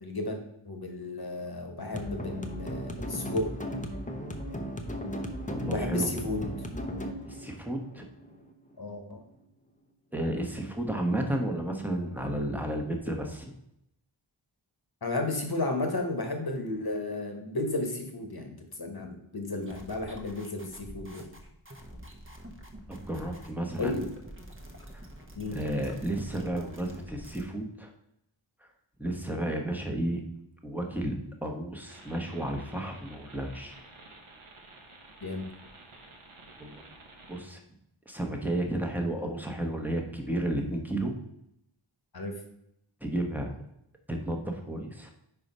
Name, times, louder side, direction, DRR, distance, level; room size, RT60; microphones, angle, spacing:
voice 1, 0.0-3.5 5.6-6.4 8.8-9.2 15.0-21.3 23.8-24.0 25.4-25.6 35.2-35.4 42.1-42.3, left 2 dB, 50° left, 4 dB, 1.3 m, -33 dB
sound 1, 1.9-8.9, equal, 15° left, 0.8 m, -36 dB
voice 2, 5.5-6.1 7.2-8.0 10.1-13.5 22.9-23.9 25.5-27.9 29.0-30.2 30.6-31.1 31.4-33.8 36.6-36.8 37.3-37.6 38.1-41.1 43.0-43.5 44.1-45.1, right 1 dB, 5° right, 2 dB, 1.1 m, -32 dB
sound 2, 19.6-27.4, equal, 25° right, 1.1 m, -47 dB
sound 3, 31.9-37.4, right 2 dB, 90° right, 1.1 m, -52 dB
4.8 x 4.7 x 5.4 m, 0.78 s
wide cardioid pair, 55°, 48 cm